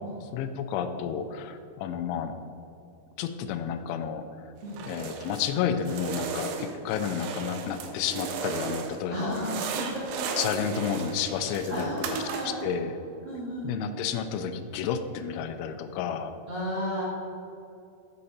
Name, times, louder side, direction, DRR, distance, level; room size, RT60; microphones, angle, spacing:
voice 1, 0.3-2.3 3.2-4.5 4.9-9.6 10.4-12.2 12.6-12.9 13.6-16.4, left 7 dB, 85° left, 8 dB, 2.9 m, -31 dB
sound 1, 4.7-5.5 5.8-9.0 9.3-12.7, right 6 dB, 80° right, 2.3 m, -36 dB
voice 2, 9.1-10.2 11.7-12.7 13.2-14.0 16.5-17.0, equal, 65° right, -10 dB, 1.5 m, -33 dB
6.8 x 6.4 x 4.2 m, 2.7 s
omnidirectional pair, 5.3 m